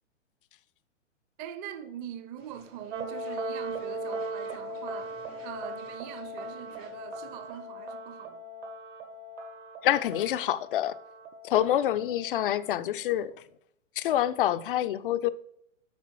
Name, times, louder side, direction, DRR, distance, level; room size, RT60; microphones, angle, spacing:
voice 1, 1.4-8.4, right 10 dB, 25° right, 0.7 m, -43 dB
sound 1, 2.4-7.6, right 2 dB, 85° right, 3.3 m, -54 dB
sound 2, 2.9-12.6, right 1 dB, 65° right, 1.4 m, -39 dB
voice 2, 9.8-11.0 11.4-13.3 14.0-15.3, left 12 dB, 45° left, 0.5 m, -26 dB
8.4 x 5.2 x 4.6 m
figure-of-eight pair, 120°, 38 cm